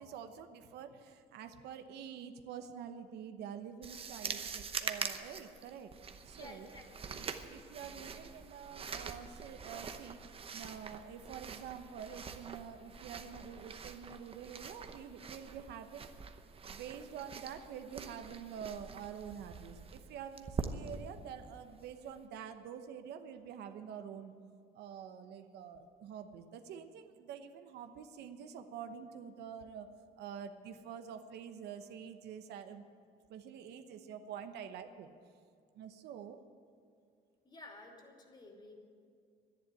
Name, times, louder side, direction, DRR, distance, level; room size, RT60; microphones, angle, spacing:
voice 1, 0.0-5.9 6.3-6.7 7.1-10.2 10.5-16.1 16.7-24.3 24.7-32.8 33.3-35.1 35.7-36.4, right 8 dB, 80° right, 8 dB, 0.9 m, -47 dB
sound 1, 3.8-22.2, right 5 dB, 35° right, 0.9 m, -45 dB
voice 2, 6.3-7.1 37.4-38.8, left 2 dB, 25° left, 1 dB, 2.7 m, -53 dB
11.5 x 10.5 x 9.6 m, 2.2 s
cardioid pair, 110°, 17 cm